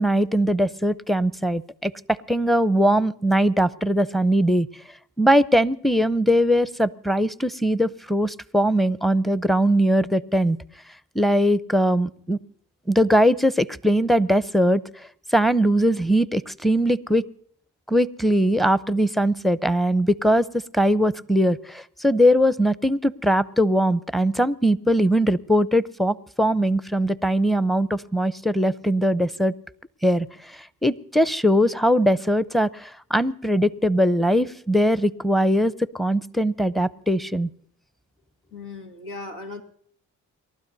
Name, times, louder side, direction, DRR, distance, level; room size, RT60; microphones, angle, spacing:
voice 1, 0.0-4.7 5.2-10.6 11.1-12.4 12.9-14.8 15.3-17.2 17.9-20.5 20.7-29.5 30.0-30.3 30.8-37.5, equal, ahead, 17 dB, 0.6 m, -21 dB
voice 2, 38.5-39.6, left 3 dB, 90° left, 3 dB, 2.1 m, -37 dB
28.5 x 12.5 x 2.7 m, 0.63 s
supercardioid pair, 45°, 39 cm